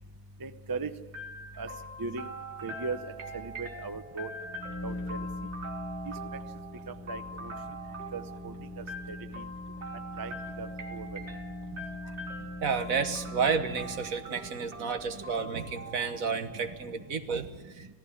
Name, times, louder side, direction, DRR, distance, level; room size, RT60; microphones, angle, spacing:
voice 1, 0.4-1.0 1.6-1.7 2.0-2.3 2.6-4.3 4.8-5.3 6.0-6.4 6.9-7.8 8.1-9.4 10.2-11.3 13.2-13.5 13.8-17.1 17.6-17.9, right 4 dB, 20° right, 10 dB, 0.6 m, -41 dB
sound 1, 1.1-16.9, right 1 dB, 50° right, 2.2 m, -44 dB
sound 2, 4.3-14.2, left 1 dB, 15° left, 0.9 m, -42 dB
voice 2, 12.6-18.0, right 5 dB, 70° right, 8 dB, 1.7 m, -31 dB
17.5 x 15.0 x 9.9 m, 1.2 s
omnidirectional pair, 1.5 m